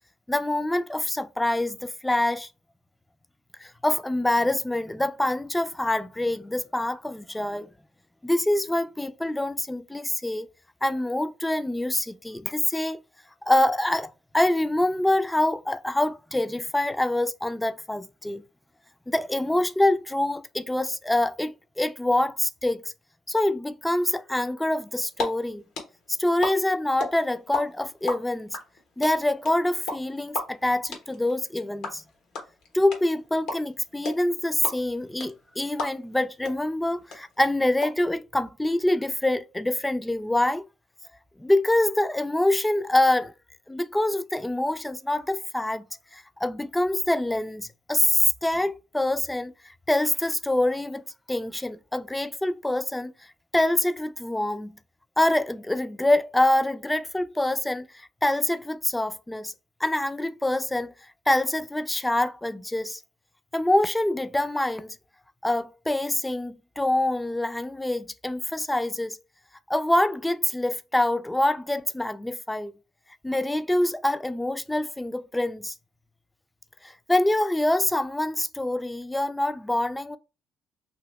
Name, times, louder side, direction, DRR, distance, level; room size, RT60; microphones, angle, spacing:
voice 1, 0.3-2.5 3.6-7.7 8.2-10.5 10.8-13.0 13.5-14.1 14.3-18.4 19.1-22.8 23.3-25.6 26.2-28.5 29.0-32.0 32.7-40.6 41.4-43.3 43.7-45.8 46.1-49.5 49.9-51.0 51.3-53.1 53.5-54.8 55.2-59.5 59.8-60.9 61.3-63.0 63.5-65.0 65.4-69.2 69.7-72.7 73.2-75.7 76.8-80.2, left 1 dB, 10° left, 0.3 m, -25 dB
sound 1, 24.9-25.3 25.5-27.6 27.9-36.2 36.5-36.6 36.8-37.9, left 3 dB, 80° left, 1.0 m, -32 dB
2.9 x 2.7 x 3.0 m
supercardioid pair, 80°, 0 cm